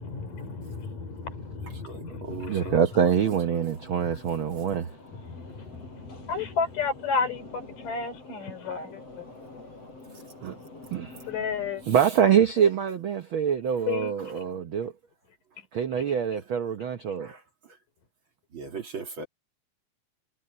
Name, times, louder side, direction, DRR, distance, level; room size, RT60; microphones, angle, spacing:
voice 1, 0.0-2.8 4.0-4.2 5.1-9.3 9.5-9.6 11.3-11.8 13.9-14.6 15.6-15.7, left 5 dB, 75° left, 5.3 m, -33 dB
voice 2, 1.9-2.8 17.2-17.3 18.5-19.3, right 4 dB, 40° right, 2.3 m, -38 dB
sound 1, 2.2-12.0, left 3 dB, 45° left, 8.0 m, -47 dB
voice 3, 2.5-4.9 10.4-10.6 10.9-11.2 11.9-14.9 15.7-17.3, right 8 dB, 80° right, 1.1 m, -25 dB
omnidirectional pair, 3.8 m